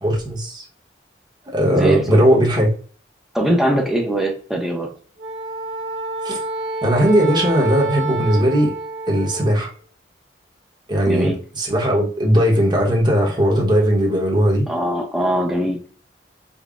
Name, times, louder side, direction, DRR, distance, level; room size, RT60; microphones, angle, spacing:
voice 1, 0.0-0.6 1.5-2.7 6.2-6.4 6.8-8.7 9.1-9.7 10.9-14.7, equal, 25° right, -1 dB, 0.9 m, -18 dB
voice 2, 1.7-2.2 3.3-4.9 11.1-11.4 14.7-15.8, right 1 dB, ahead, 0 dB, 0.6 m, -21 dB
Wind instrument woodwind instrument, 5.2-9.6, right 2 dB, 80° right, 1.2 m, -27 dB
5.2 x 2.1 x 2.4 m, 0.42 s
head